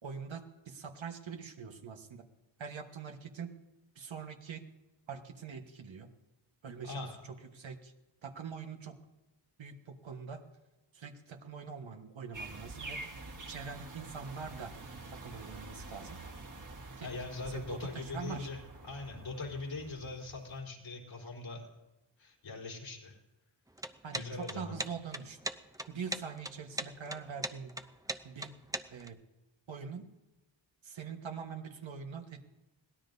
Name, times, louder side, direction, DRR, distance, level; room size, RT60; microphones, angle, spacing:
voice 1, 0.0-2.3 2.6-3.5 3.9-4.6 5.1-6.1 6.6-7.9 8.2-9.0 9.6-10.4 10.9-13.0 13.5-14.8 15.1-16.2 17.0-17.1 17.5-18.5 24.0-25.4 25.9-27.8 28.2-28.6 28.9-29.2 29.7-30.1 30.8-32.4, right 6 dB, 80° right, 5 dB, 1.4 m, -43 dB
voice 2, 6.8-7.2 17.0-21.7 22.2-23.2 24.1-24.8, left 3 dB, 80° left, -1 dB, 4.0 m, -41 dB
sound 1, 12.3-20.6, right 2 dB, 45° right, 1.8 m, -47 dB
sound 2, 23.7-29.1, right 1 dB, 10° right, 0.7 m, -39 dB
22.5 x 17.0 x 2.7 m, 1.0 s
cardioid pair, 65°, 45 cm